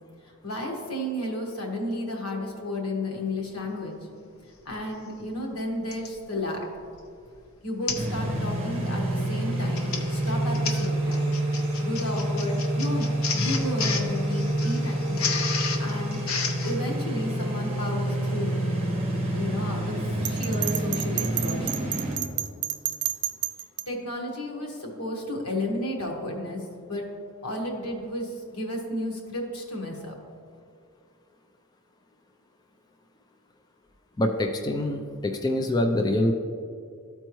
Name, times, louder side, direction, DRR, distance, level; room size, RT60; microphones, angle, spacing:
voice 1, 0.4-3.9 4.6-6.7 7.6-11.3 11.8-15.3 15.8-16.2 16.6-18.5 19.3-21.9 23.9-27.1 27.4-30.2, left 1 dB, 85° left, 0 dB, 1.4 m, -32 dB
Printer, 4.7-4.8 5.9-6.2 6.8-7.0 7.3-7.4 7.9-8.1 8.5-8.7 9.5-16.8, left 4 dB, 70° left, 0.8 m, -32 dB
sound 1, 7.9-22.2, right 1 dB, 30° right, 1.2 m, -28 dB
Bell, 20.2-23.8, right 13 dB, 85° right, 0.4 m, -30 dB
voice 2, 34.2-36.3, left 1 dB, 20° left, 3 dB, 0.3 m, -25 dB
13.0 x 4.4 x 3.1 m, 2.3 s
head